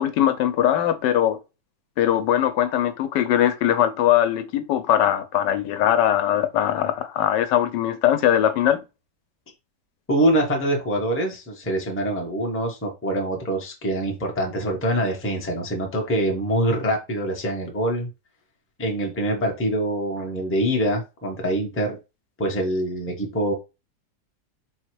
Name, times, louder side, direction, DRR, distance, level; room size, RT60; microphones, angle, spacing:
voice 1, 0.0-1.4 2.0-8.8, left 11 dB, 85° left, 1.3 m, -21 dB
voice 2, 10.1-18.1 18.8-22.0 22.4-23.5, right 1 dB, 10° left, 0.6 m, -24 dB
4.0 x 2.3 x 4.5 m
omnidirectional pair, 1.8 m